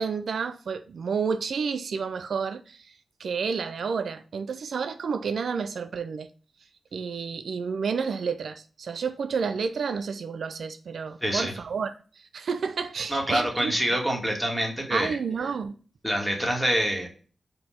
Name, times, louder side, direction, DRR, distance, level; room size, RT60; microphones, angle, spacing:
voice 1, 0.0-6.3 6.9-14.0 14.9-15.8, right 5 dB, 80° right, 0.3 m, -30 dB
voice 2, 11.2-11.5 13.1-15.1 16.0-17.1, equal, ahead, 1.8 m, -26 dB
4.4 x 2.8 x 4.2 m
cardioid pair, 60°, 0 cm